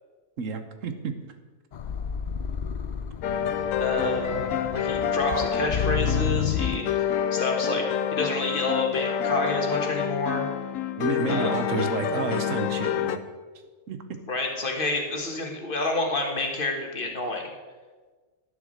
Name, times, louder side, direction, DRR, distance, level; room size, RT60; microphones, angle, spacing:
voice 1, 0.4-1.1 11.0-13.2 13.9-14.2, right 5 dB, 80° right, 8 dB, 1.3 m, -30 dB
sound 1, 1.7-6.8, left 7 dB, 70° left, 0.4 m, -30 dB
sound 2, 3.2-13.2, left 9 dB, 90° left, 1.0 m, -28 dB
voice 2, 3.8-6.9 7.3-7.8 8.1-10.4 11.3-11.6 14.3-17.5, left 2 dB, 45° left, 2 dB, 1.7 m, -28 dB
11.0 x 7.1 x 6.5 m, 1.4 s
omnidirectional pair, 1.3 m